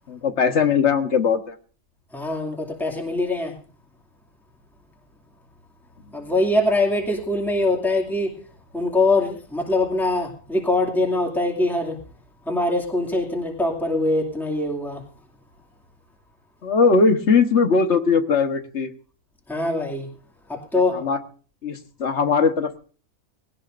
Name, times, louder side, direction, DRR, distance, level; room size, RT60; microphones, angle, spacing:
voice 1, 0.1-1.5 16.6-18.9 20.9-21.2 21.6-22.8, left 5 dB, 60° left, 7 dB, 1.6 m, -20 dB
voice 2, 2.1-3.6 6.1-8.3 8.7-12.0 12.5-15.0 19.5-20.1 20.5-21.0, left 2 dB, ahead, -1 dB, 2.4 m, -23 dB
20.0 x 17.5 x 2.6 m, 0.40 s
omnidirectional pair, 1.4 m